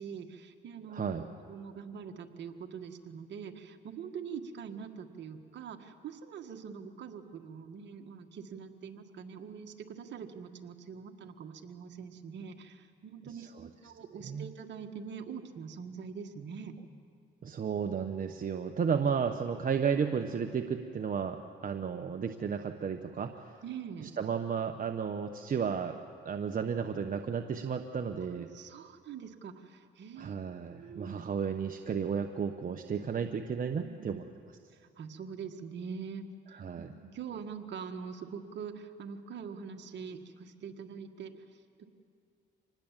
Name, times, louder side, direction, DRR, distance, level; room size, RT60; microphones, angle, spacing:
voice 1, 0.0-1.1 1.4-16.7 23.6-24.1 28.3-30.4 30.7-31.1 33.8-34.2 34.8-41.9, right 6 dB, 65° right, 4 dB, 1.6 m, -44 dB
voice 2, 0.9-1.2 13.3-13.7 14.2-14.5 17.4-23.6 24.0-26.0 26.2-28.5 30.2-34.2 36.5-36.9, right 6 dB, 45° right, 5 dB, 1.0 m, -33 dB
25.5 x 20.0 x 7.4 m, 2.4 s
cardioid pair, 90°, 20 cm